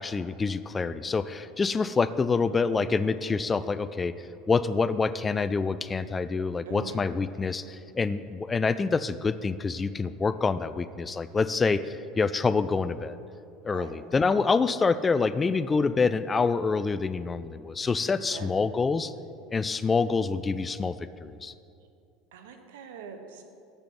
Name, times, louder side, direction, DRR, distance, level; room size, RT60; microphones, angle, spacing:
voice 1, 0.0-4.1 4.5-13.2 13.6-19.1 19.5-21.0 21.2-21.5, left 4 dB, 20° left, 14 dB, 0.3 m, -26 dB
voice 2, 6.6-7.0 13.7-13.9 18.3-18.5 22.3-23.4, right 6 dB, 80° right, 6 dB, 0.9 m, -42 dB
6.9 x 6.8 x 6.1 m, 2.5 s
hypercardioid pair, 90°, 0 cm